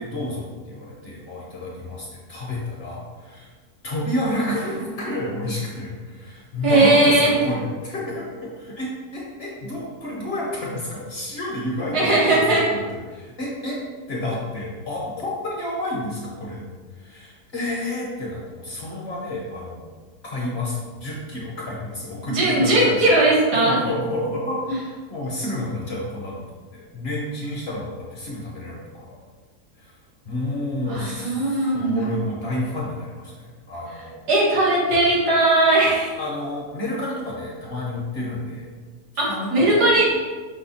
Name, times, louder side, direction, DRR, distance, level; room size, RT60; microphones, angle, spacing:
voice 1, 0.0-3.5 3.8-12.8 13.1-13.8 14.1-16.6 16.9-19.9 20.2-23.0 23.5-24.6 25.1-26.4 26.7-29.2 29.8-29.9 30.2-34.2 36.2-38.7 39.3-40.0, left 1 dB, 50° left, -4 dB, 0.8 m, -30 dB
voice 2, 6.6-7.3 11.9-12.6 22.3-23.8 30.9-32.2 34.3-36.1 39.2-40.1, right 2 dB, 85° right, -6 dB, 1.9 m, -18 dB
5.5 x 2.3 x 4.0 m, 1.4 s
omnidirectional pair, 1.7 m